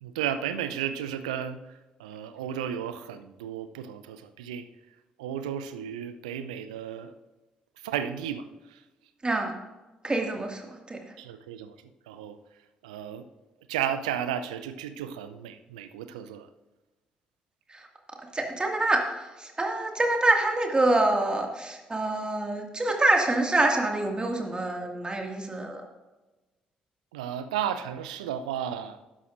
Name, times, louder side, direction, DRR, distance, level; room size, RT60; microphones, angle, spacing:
voice 1, 0.0-4.7 5.2-7.1 7.8-8.8 11.2-11.8 12.1-12.4 12.8-13.3 13.7-16.5 27.1-29.0, right 9 dB, 75° right, 11 dB, 0.5 m, -33 dB
voice 2, 10.0-11.0 17.7-17.9 18.3-19.0 19.4-25.8, right 2 dB, 20° right, 2 dB, 2.1 m, -26 dB
13.5 x 11.0 x 2.6 m, 1.1 s
figure-of-eight pair, 40°, 4 cm